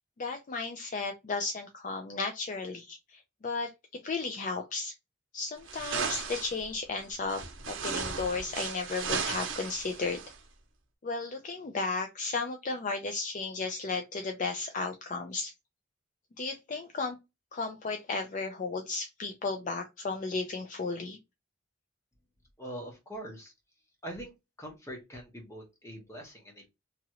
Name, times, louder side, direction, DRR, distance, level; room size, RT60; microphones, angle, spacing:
voice 1, 0.2-4.9 5.3-7.4 7.7-10.2 11.0-15.5 16.4-17.2 17.5-21.2, left 4 dB, 40° left, 5 dB, 0.4 m, -34 dB
sound 1, 5.7-6.6 7.3-10.3, right 5 dB, 75° right, 0.7 m, -35 dB
voice 2, 22.6-23.5 24.0-24.3 24.6-26.7, right 1 dB, 15° left, 1 dB, 1.0 m, -43 dB
2.9 x 2.4 x 2.9 m, 0.23 s
head